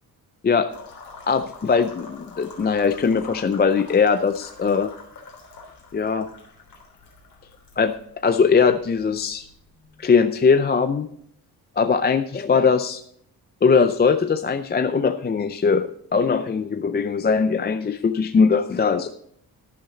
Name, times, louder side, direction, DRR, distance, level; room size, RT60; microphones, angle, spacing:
sound 1, 0.7-10.5, left 4 dB, 60° left, 3.5 m, -45 dB
voice 1, 1.3-4.9 5.9-6.3 7.8-7.9 8.2-9.4 10.0-11.1 11.8-13.0 13.6-19.1, left 5 dB, 25° left, 9 dB, 0.5 m, -20 dB
11.5 x 10.5 x 3.9 m, 0.67 s
cardioid pair, 120°, 38 cm